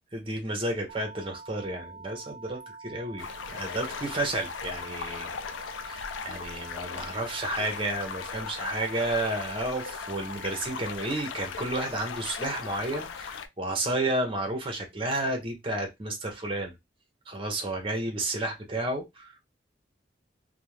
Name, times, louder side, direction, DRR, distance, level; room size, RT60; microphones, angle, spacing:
voice 1, 0.1-5.4 5.9-16.7 17.3-19.4, right 1 dB, 30° right, 0.6 m, -31 dB
sound 1, 0.9-10.9, right 4 dB, 85° right, 0.4 m, -46 dB
sound 2, 3.2-13.5, left 6 dB, 80° left, 0.3 m, -38 dB
2.4 x 2.1 x 3.0 m
head